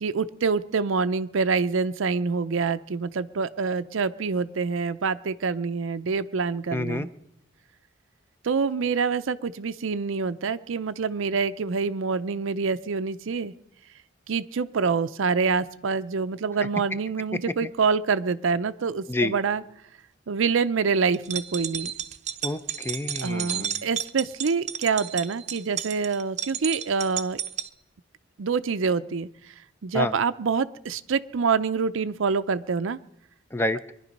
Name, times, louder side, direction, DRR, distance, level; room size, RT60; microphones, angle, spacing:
voice 1, 0.0-7.1 8.4-13.5 14.3-19.6 20.3-21.9 23.2-27.4 28.4-29.3 29.8-33.0, right 5 dB, 75° right, 11 dB, 0.5 m, -26 dB
voice 2, 6.7-7.1 17.3-17.7 19.1-19.4 22.4-23.9 29.9-30.2 33.5-33.8, left 2 dB, 10° left, 11 dB, 0.5 m, -29 dB
sound 1, 21.1-27.7, right 9 dB, 35° right, 0.7 m, -32 dB
23.5 x 11.0 x 5.3 m, 0.83 s
head